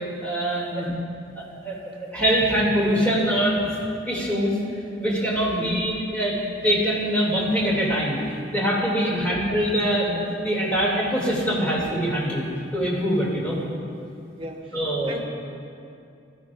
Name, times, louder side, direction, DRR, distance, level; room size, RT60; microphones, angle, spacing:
voice 1, 0.2-0.8 1.6-3.8 4.1-4.5 5.0-6.4 6.6-12.5 12.7-13.6 14.7-15.2, equal, 10° left, -6 dB, 2.6 m, -23 dB
voice 2, 0.7-1.1 5.5-5.9 9.1-9.3 13.5-13.8 14.4-14.8 15.1-15.2, left 1 dB, 30° right, -1 dB, 1.1 m, -32 dB
14.5 x 14.0 x 2.5 m, 2.5 s
head